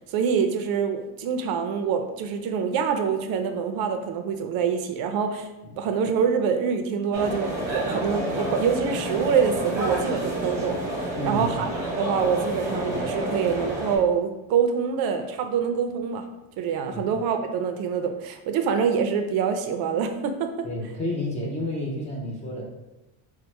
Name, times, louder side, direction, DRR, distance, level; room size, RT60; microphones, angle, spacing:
voice 1, 0.1-5.5 5.8-11.7 12.0-16.3 16.6-20.7, right 6 dB, 60° right, 6 dB, 0.5 m, -25 dB
sound 1, 7.1-14.0, right 1 dB, 10° right, 0.7 m, -29 dB
voice 2, 11.2-11.5 16.9-17.0 20.6-22.6, left 1 dB, 20° left, -3 dB, 0.4 m, -30 dB
4.5 x 2.1 x 4.0 m, 1.0 s
cardioid pair, 175°, 42 cm